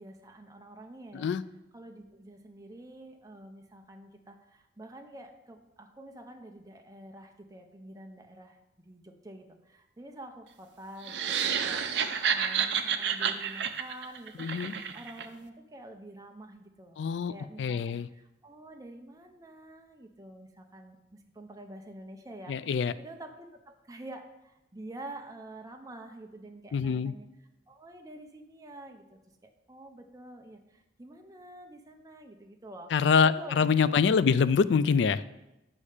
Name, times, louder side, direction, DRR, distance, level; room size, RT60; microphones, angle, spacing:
voice 1, 0.0-1.3 1.7-8.6 8.8-14.5 14.9-17.0 17.3-27.3 27.7-32.9 33.2-33.7, right 1 dB, 20° right, 3 dB, 0.6 m, -48 dB
sound 1, 11.0-15.3, right 7 dB, 70° right, 0.6 m, -30 dB
voice 2, 14.4-14.7 17.0-17.3 17.6-18.1 22.5-22.9 26.7-27.1 32.9-35.2, left 6 dB, 75° left, 16 dB, 0.3 m, -25 dB
8.6 x 5.4 x 4.9 m, 0.93 s
head